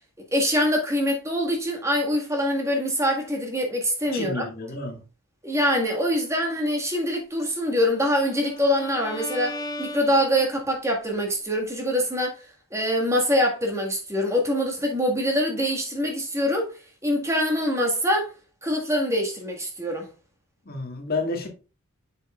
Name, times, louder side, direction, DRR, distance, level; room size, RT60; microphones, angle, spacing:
voice 1, 0.3-4.5 5.4-12.4 12.7-16.7 17.0-18.3 18.6-20.1, equal, 15° right, 1.8 m, -24 dB
voice 2, 4.1-5.0 20.7-21.5, left 3 dB, 45° left, 1.9 m, -30 dB
Bowed string instrument, 7.7-10.8, left 1 dB, 20° left, 0.7 m, -37 dB
7.4 x 6.5 x 2.4 m
head